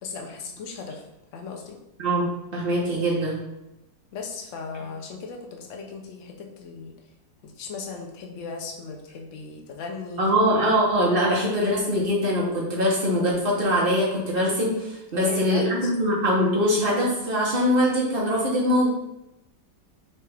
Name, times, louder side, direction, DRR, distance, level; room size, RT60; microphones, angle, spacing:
voice 1, 0.0-1.0 1.3-1.8 4.1-7.0 7.4-10.2 15.1-15.9, left 4 dB, 60° left, 2 dB, 0.7 m, -37 dB
voice 2, 2.0-3.4 10.2-18.9, equal, 40° right, -4 dB, 0.9 m, -22 dB
5.5 x 2.4 x 3.3 m, 0.90 s
omnidirectional pair, 1.9 m